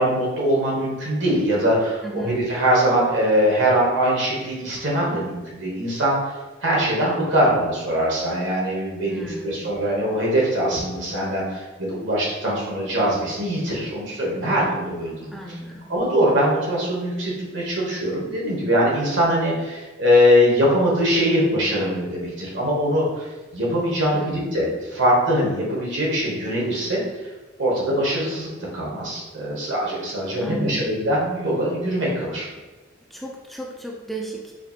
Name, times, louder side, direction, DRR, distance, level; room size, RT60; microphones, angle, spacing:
voice 1, 0.0-6.3 6.6-15.3 15.9-23.3 23.5-27.0 27.6-32.5, equal, 70° right, -4 dB, 1.3 m, -22 dB
voice 2, 2.0-2.4 9.1-9.7 15.3-15.8 24.1-24.6 30.4-31.0 33.1-34.5, right 1 dB, ahead, -2 dB, 0.4 m, -34 dB
4.9 x 2.9 x 2.5 m, 1.2 s
head